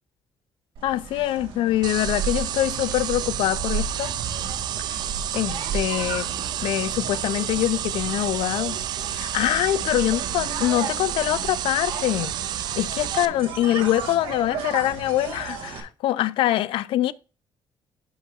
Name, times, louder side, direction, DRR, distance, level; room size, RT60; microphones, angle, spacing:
voice 1, 0.8-4.1 4.9-5.0 5.3-6.3 6.6-8.8 9.1-12.3 12.8-17.1, left 14 dB, 85° left, 0.4 m, -24 dB
sound 1, 0.8-15.8, right 6 dB, 75° right, 2.1 m, -34 dB
sound 2, 1.8-13.3, right 11 dB, 50° right, 0.4 m, -30 dB
11.5 x 5.5 x 2.4 m
cardioid pair, 180°, 9 cm